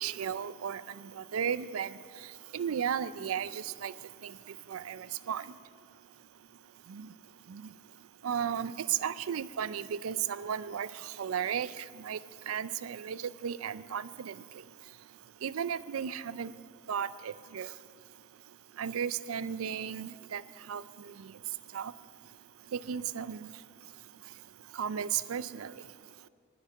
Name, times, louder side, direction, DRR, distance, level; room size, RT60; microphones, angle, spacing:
voice 1, 0.0-1.9 2.5-3.9 4.2-4.4 4.7-5.4 6.9-7.1 7.5-7.6 8.2-12.2 12.5-14.4 15.4-16.5 16.9-17.7 18.8-20.4 20.7-21.3 21.7-21.9 22.7-23.5 24.7-25.7, right 8 dB, 90° right, 17 dB, 0.4 m, -34 dB
10.0 x 7.8 x 9.7 m, 2.1 s
head